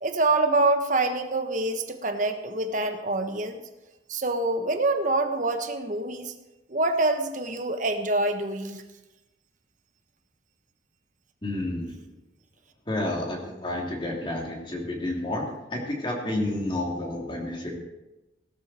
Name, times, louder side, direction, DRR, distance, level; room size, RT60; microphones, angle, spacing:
voice 1, 0.0-3.6 4.1-6.3 6.7-8.8, right 2 dB, 40° right, 6 dB, 1.3 m, -26 dB
voice 2, 11.4-12.1 12.9-17.8, left 1 dB, 25° left, -1 dB, 3.0 m, -30 dB
17.5 x 13.0 x 4.4 m, 1.0 s
head